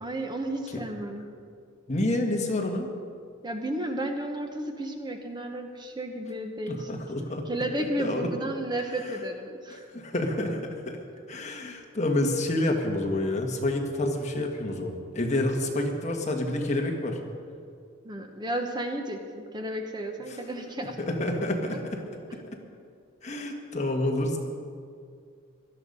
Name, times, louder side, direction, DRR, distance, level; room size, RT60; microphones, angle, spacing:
voice 1, 0.0-1.3 3.4-7.0 7.4-9.9 18.0-21.0, right 1 dB, 20° right, 4 dB, 0.9 m, -33 dB
voice 2, 1.9-2.9 6.7-7.4 8.0-8.3 9.9-10.6 10.8-11.0 11.3-17.2 21.0-22.0 22.3-22.4 23.2-24.4, left 1 dB, 35° left, 2 dB, 1.5 m, -28 dB
17.0 x 12.5 x 5.4 m, 2.3 s
head